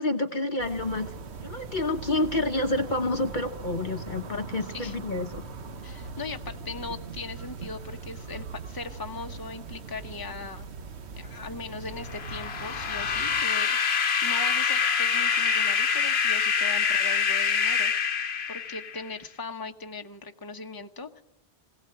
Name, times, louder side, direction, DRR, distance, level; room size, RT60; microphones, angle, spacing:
voice 1, 0.0-5.4, left 2 dB, 50° left, 7 dB, 1.0 m, -29 dB
sound 1, 0.6-13.4, right 4 dB, 75° right, 1.3 m, -41 dB
voice 2, 5.8-10.7 11.2-21.2, left 3 dB, 20° left, 5 dB, 1.0 m, -39 dB
sound 2, 12.1-19.1, left 6 dB, 70° left, 1.2 m, -25 dB
21.5 x 17.0 x 7.8 m, 0.82 s
omnidirectional pair, 1.1 m